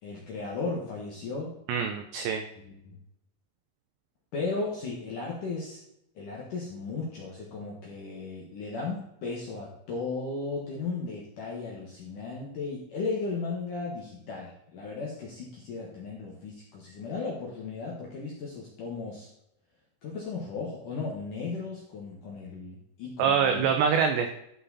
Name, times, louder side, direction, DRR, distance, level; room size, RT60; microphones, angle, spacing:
voice 1, 0.0-1.5 2.7-3.0 4.3-5.8 6.2-19.3 20.0-23.7, left 4 dB, 65° left, -3 dB, 2.1 m, -35 dB
voice 2, 1.7-2.4 23.2-24.3, right 7 dB, 85° right, 6 dB, 2.4 m, -25 dB
13.0 x 5.6 x 4.1 m, 0.78 s
omnidirectional pair, 5.9 m